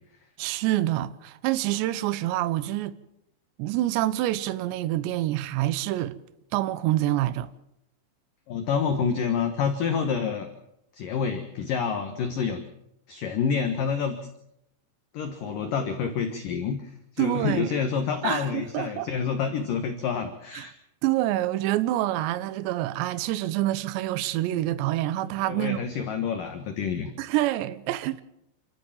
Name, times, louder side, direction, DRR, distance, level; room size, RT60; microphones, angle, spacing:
voice 1, 0.4-2.9 3.6-6.2 6.5-7.5 17.2-17.7 18.2-19.1 20.6-20.7 21.0-25.8 27.2-28.2, right 15 dB, 75° right, 2.9 m, -27 dB
voice 2, 8.5-10.5 10.9-12.6 13.1-14.2 15.1-20.7 25.5-27.1, left 6 dB, 60° left, 2.4 m, -28 dB
29.0 x 13.0 x 7.4 m
omnidirectional pair, 5.6 m